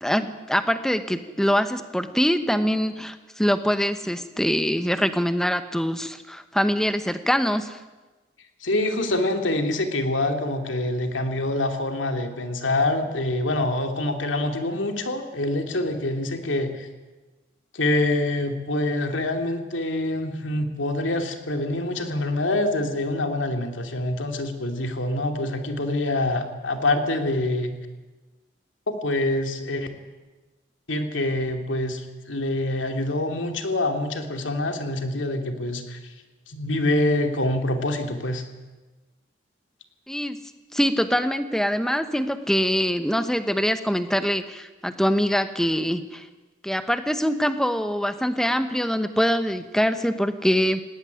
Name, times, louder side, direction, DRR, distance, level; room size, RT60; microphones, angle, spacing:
voice 1, 0.0-7.8 40.1-40.4 40.7-46.3 46.6-50.8, equal, 5° left, 10 dB, 1.0 m, -24 dB
voice 2, 8.6-16.9 17.7-27.7 28.9-29.9 30.9-36.1 36.5-38.4, left 1 dB, 90° left, 5 dB, 2.8 m, -25 dB
18.5 x 17.5 x 9.8 m, 1.2 s
head